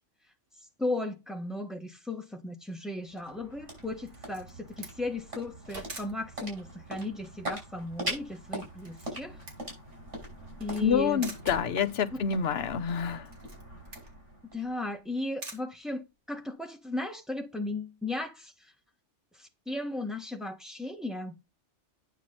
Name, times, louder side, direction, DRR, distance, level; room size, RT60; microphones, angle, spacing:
voice 1, 0.8-9.4 10.6-11.2 12.1-12.2 14.5-18.7 19.3-21.3, left 2 dB, ahead, 1.5 m, -36 dB
sound 1, 2.7-15.1, right 1 dB, 85° right, 5.6 m, -42 dB
Camera, 4.1-16.6, right 2 dB, 70° right, 2.7 m, -50 dB
sound 2, 5.6-7.0 10.4-12.0, right 1 dB, 50° right, 2.5 m, -48 dB
voice 2, 10.8-13.2, left 7 dB, 60° left, 1.0 m, -27 dB
9.4 x 5.9 x 4.3 m
omnidirectional pair, 1.2 m